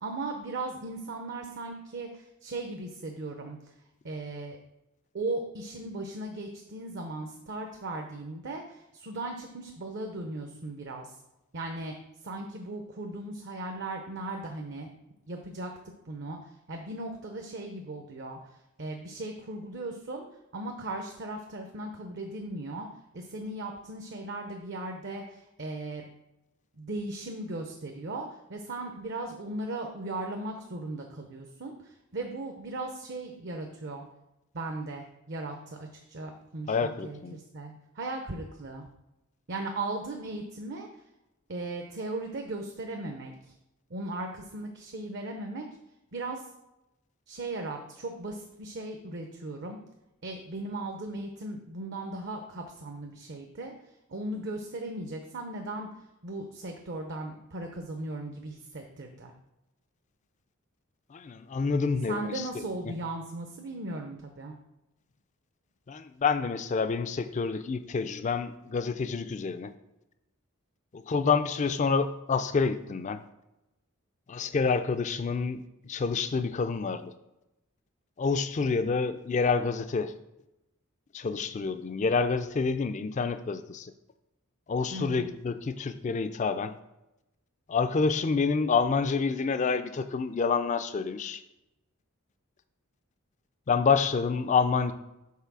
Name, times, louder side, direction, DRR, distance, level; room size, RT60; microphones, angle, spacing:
voice 1, 0.0-3.8 4.0-4.6 5.1-11.2 11.5-12.0 12.2-14.9 15.3-15.7 16.0-20.2 20.5-22.9 23.1-26.1 26.7-34.1 34.5-38.9 39.5-41.0 41.5-43.5 43.9-45.7 46.1-46.5 47.3-49.8 50.2-53.7 54.1-55.9 56.2-59.3 62.1-64.5 84.9-85.3, right 2 dB, 50° right, 3 dB, 0.6 m, -37 dB
voice 2, 36.7-37.4 61.1-62.4 65.9-69.7 70.9-73.2 74.3-77.1 78.2-80.1 81.1-83.9 84.7-86.7 87.7-91.4 93.7-94.9, left 5 dB, 35° left, 11 dB, 0.3 m, -28 dB
5.6 x 4.0 x 6.0 m, 0.92 s
head